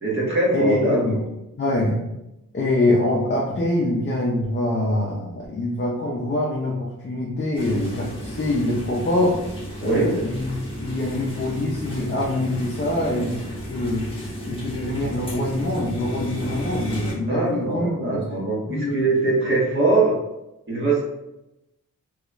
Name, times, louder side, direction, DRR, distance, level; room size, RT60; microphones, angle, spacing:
voice 1, 0.0-1.0 9.8-10.1 17.3-20.1 20.7-21.0, right 3 dB, 35° right, -5 dB, 1.4 m, -22 dB
voice 2, 0.5-1.2 1.6-2.0 2.5-9.4 9.8-10.5 10.8-13.4 13.7-19.0, left 1 dB, 35° left, -3 dB, 0.6 m, -24 dB
sound 1, 7.5-17.1, equal, 15° left, 1.0 m, -33 dB
3.5 x 3.1 x 2.3 m, 0.92 s
wide cardioid pair, 105°, 34 cm